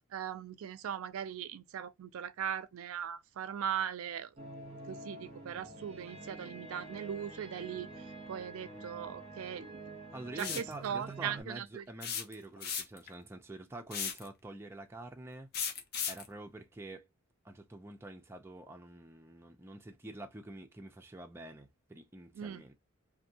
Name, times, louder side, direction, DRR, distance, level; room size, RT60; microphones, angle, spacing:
voice 1, 0.1-4.3 4.9-7.9 8.3-9.7 10.4-11.8 22.4-22.6, right 8 dB, 75° right, 0.4 m, -39 dB
sound 1, 4.4-11.4, right 2 dB, 30° right, 1.0 m, -48 dB
voice 2, 10.1-15.5 16.0-17.1 17.4-22.7, right 2 dB, 10° right, 0.4 m, -47 dB
sound 2, 10.4-10.7 12.0-13.1 13.9-14.3 15.5-16.3, left 7 dB, 50° left, 0.6 m, -36 dB
2.6 x 2.6 x 2.7 m
head